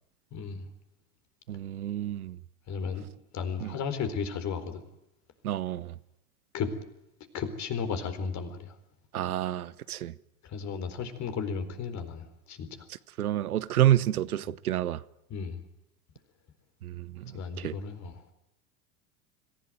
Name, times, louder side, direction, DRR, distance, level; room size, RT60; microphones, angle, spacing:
voice 1, 0.3-0.6 2.7-3.1 3.3-4.8 6.5-6.7 7.3-8.7 10.4-12.7 15.3-15.6 17.3-18.1, left 6 dB, 40° left, 4.2 m, -34 dB
voice 2, 1.5-2.4 3.6-3.7 5.4-5.9 9.1-10.1 13.2-15.0 16.8-17.8, right 12 dB, 75° right, 1.0 m, -29 dB
26.0 x 16.0 x 9.3 m
figure-of-eight pair, 85°, 44 cm